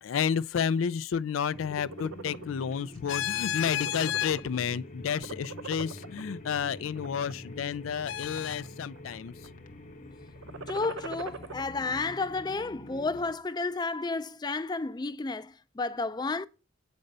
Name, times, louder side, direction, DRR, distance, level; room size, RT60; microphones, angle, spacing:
voice 1, 0.0-9.5, left 7 dB, 90° left, 0.4 m, -30 dB
sound 1, 1.5-13.4, left 1 dB, 40° left, 0.8 m, -45 dB
sound 2, 1.6-2.5 2.9-3.2 3.5-4.7 5.1-6.2 6.8-7.3 7.9-8.7 9.0-9.5 10.3-11.6, right 4 dB, 90° right, 0.7 m, -42 dB
voice 2, 10.7-16.5, left 3 dB, 20° left, 0.3 m, -32 dB
8.8 x 5.3 x 5.4 m
head